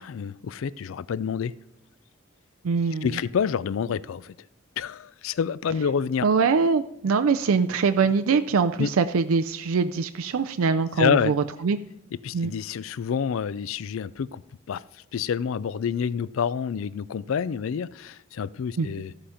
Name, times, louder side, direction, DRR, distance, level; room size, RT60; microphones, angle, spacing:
voice 1, 0.0-1.5 3.0-4.3 4.8-6.3 8.8-8.9 11.0-11.3 12.2-14.4 14.7-14.8 15.1-19.3, left 7 dB, 70° left, 0.4 m, -28 dB
voice 2, 2.6-3.1 6.2-11.4 11.6-11.8 12.3-12.5 18.8-18.9, right 5 dB, 85° right, 0.4 m, -23 dB
14.0 x 5.0 x 5.7 m
head